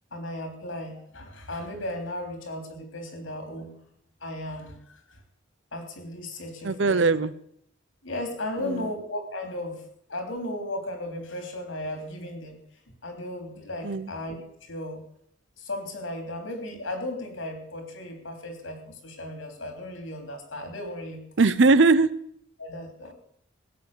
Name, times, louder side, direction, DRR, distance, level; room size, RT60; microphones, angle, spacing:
voice 1, 0.1-3.7 4.2-5.2 5.7-7.1 8.0-9.8 10.1-12.6 13.0-14.4 14.6-15.0 15.6-21.2 22.6-23.1, left 1 dB, 90° left, 5 dB, 3.5 m, -35 dB
voice 2, 6.6-7.3 8.6-8.9 13.8-14.1 21.4-22.1, right 3 dB, 65° right, 17 dB, 0.7 m, -20 dB
17.5 x 8.4 x 6.8 m, 0.69 s
head